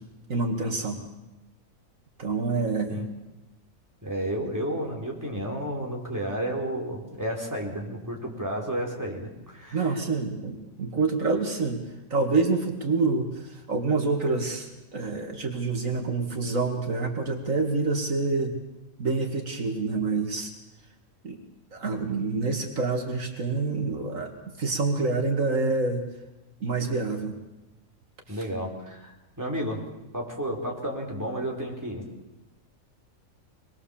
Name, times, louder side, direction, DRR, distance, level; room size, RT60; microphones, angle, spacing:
voice 1, 0.3-1.0 2.2-3.0 9.7-11.8 12.1-18.6 19.0-20.5 21.2-21.4 21.7-24.3 24.6-26.0 26.6-27.4, right 3 dB, 75° right, 3 dB, 2.5 m, -27 dB
voice 2, 4.0-10.0 28.3-29.8 30.1-32.0, right 1 dB, 15° right, -2 dB, 4.5 m, -32 dB
25.5 x 21.0 x 7.3 m, 1.0 s
omnidirectional pair, 1.4 m